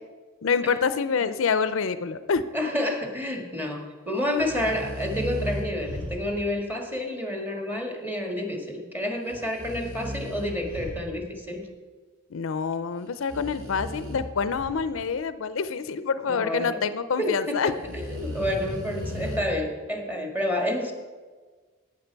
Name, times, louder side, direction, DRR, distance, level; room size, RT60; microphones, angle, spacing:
voice 1, 0.4-2.4 12.3-17.7, left 5 dB, 70° left, 13 dB, 0.5 m, -26 dB
voice 2, 2.5-11.7 16.2-16.8 17.2-20.9, left 1 dB, 10° right, 2 dB, 1.5 m, -29 dB
sound 1, 4.4-6.6 9.3-11.4 13.1-15.0 17.8-19.4, equal, 65° right, 2.7 m, -35 dB
12.0 x 8.5 x 4.6 m, 1.4 s
head